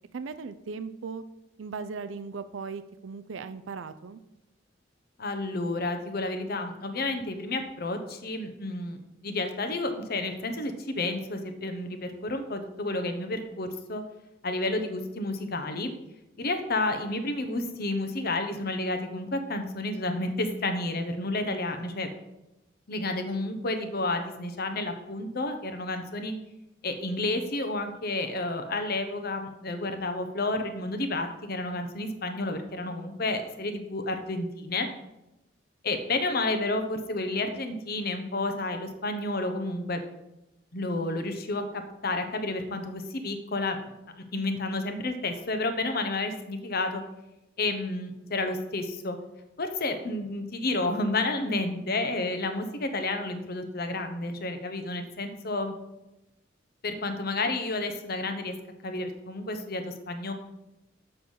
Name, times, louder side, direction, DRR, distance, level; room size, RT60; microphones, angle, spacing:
voice 1, 0.1-1.2 1.6-4.2, right 5 dB, 80° right, 12 dB, 0.5 m, -38 dB
voice 2, 5.2-14.0 14.4-15.9 16.4-22.1 22.9-26.3 26.8-34.9 35.8-40.0 40.7-43.8 44.3-47.0 47.6-49.2 49.6-55.7 56.8-58.5 58.8-60.3, left 2 dB, 55° left, 7 dB, 0.9 m, -31 dB
6.9 x 6.3 x 5.4 m, 0.93 s
head